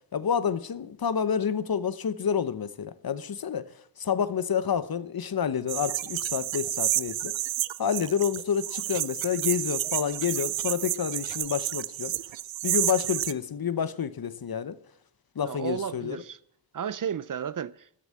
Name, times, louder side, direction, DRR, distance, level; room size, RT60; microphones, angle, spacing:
voice 1, 0.1-3.7 4.0-7.3 7.8-12.1 12.6-14.8 15.4-16.2, left 7 dB, 55° left, 0.9 m, -29 dB
sound 1, 5.7-13.3, right 13 dB, 90° right, 0.6 m, -30 dB
voice 2, 15.4-16.4 16.7-17.9, right 8 dB, 50° right, 0.5 m, -33 dB
13.0 x 8.0 x 7.6 m
cardioid pair, 70°, 43 cm